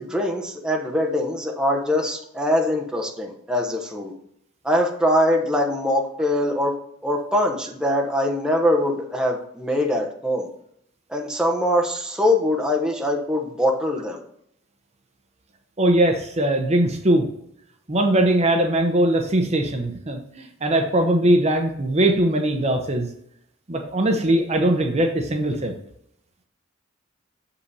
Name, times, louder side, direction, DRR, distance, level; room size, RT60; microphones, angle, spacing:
voice 1, 0.0-4.1 4.6-6.7 7.0-10.5 11.1-14.2, left 1 dB, 5° right, 0 dB, 0.9 m, -23 dB
voice 2, 15.8-17.3 17.9-23.1 23.7-25.7, right 1 dB, 35° right, 4 dB, 0.8 m, -20 dB
6.9 x 5.6 x 4.1 m, 0.73 s
head